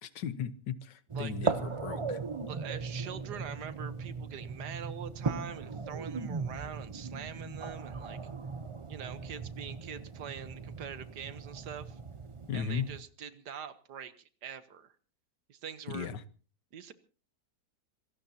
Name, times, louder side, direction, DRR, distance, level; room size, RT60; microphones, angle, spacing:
voice 1, 0.0-2.2 12.5-12.9 15.9-16.2, left 7 dB, 85° left, 14 dB, 1.7 m, -36 dB
sound 1, 1.1-13.0, right 4 dB, 30° right, 0.5 m, -38 dB
voice 2, 1.1-1.6 2.5-8.2 8.9-12.0 12.5-14.9 15.5-16.1 16.7-16.9, right 8 dB, 70° right, 13 dB, 1.7 m, -44 dB
26.5 x 17.5 x 2.8 m, 0.37 s
omnidirectional pair, 1.8 m